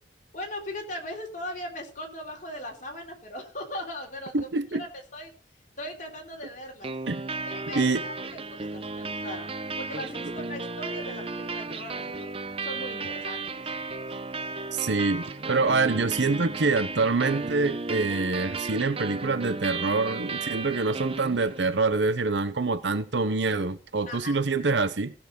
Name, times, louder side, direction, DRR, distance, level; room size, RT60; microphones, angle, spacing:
voice 1, 0.3-4.5 4.8-5.3 5.8-6.9 7.4-12.3 12.6-13.7 24.1-24.4, left 1 dB, 45° left, 3.6 m, -39 dB
voice 2, 4.3-4.8 7.1-7.2 7.7-8.0 14.7-25.1, right 3 dB, 75° right, 0.9 m, -26 dB
sound 1, 6.8-21.8, right 3 dB, 30° right, 0.7 m, -34 dB
15.5 x 7.2 x 5.3 m
head